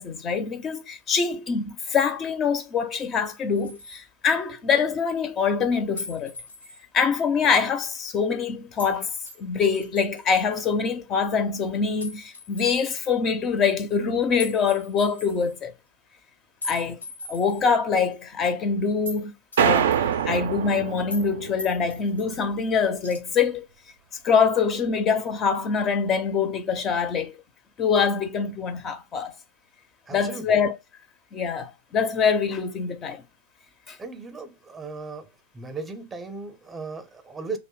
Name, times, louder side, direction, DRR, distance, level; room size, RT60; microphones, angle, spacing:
voice 1, 0.0-6.3 6.9-15.7 16.6-17.0 17.3-19.3 19.6-19.9 20.3-23.6 24.2-27.4 27.8-29.3 30.1-30.8 31.3-33.2 33.9-34.0, left 6 dB, 30° left, 0.4 m, -24 dB
sound 1, 3.5-4.0 6.0-6.8 8.8-9.0 9.3-10.5 12.0-13.0 14.4-15.6 16.6-17.7 18.1-18.2 19.0-19.2 19.5-20.4 21.1-21.3 21.6-22.3 23.0-23.2, left 2 dB, 90° left, 0.8 m, -40 dB
sound 2, 19.6-22.0, right 8 dB, 70° right, 0.3 m, -25 dB
voice 2, 30.1-30.5 34.0-35.3 35.5-37.6, right 4 dB, 15° right, 0.5 m, -36 dB
2.6 x 2.0 x 3.0 m
hypercardioid pair, 100°, 0 cm